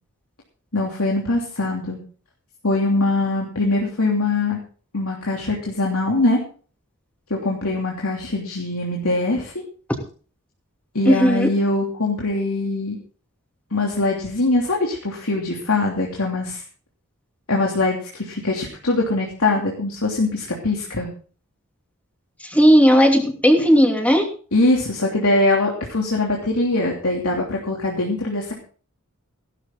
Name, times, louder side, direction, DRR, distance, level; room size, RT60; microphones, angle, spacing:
voice 1, 0.7-2.0 2.6-4.6 4.9-6.4 7.3-9.5 10.9-13.0 13.7-16.6 17.5-21.1 24.5-28.5, left 2 dB, 80° left, -1 dB, 3.0 m, -22 dB
voice 2, 11.0-11.5 22.4-24.2, equal, 5° left, 2 dB, 2.9 m, -15 dB
16.5 x 12.5 x 3.9 m, 0.41 s
head